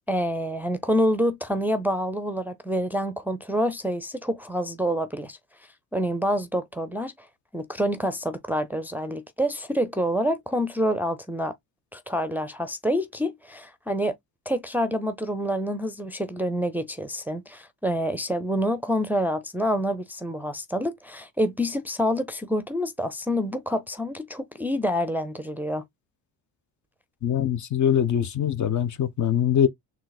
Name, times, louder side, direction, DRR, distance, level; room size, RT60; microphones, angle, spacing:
voice 1, 0.1-5.4 5.9-7.3 7.5-11.5 11.9-14.1 14.5-25.8, equal, 5° right, 0.5 m, -27 dB
voice 2, 27.2-29.7, left 9 dB, 45° left, 0.7 m, -23 dB
4.0 x 2.4 x 3.9 m
cardioid pair, 105°, 39 cm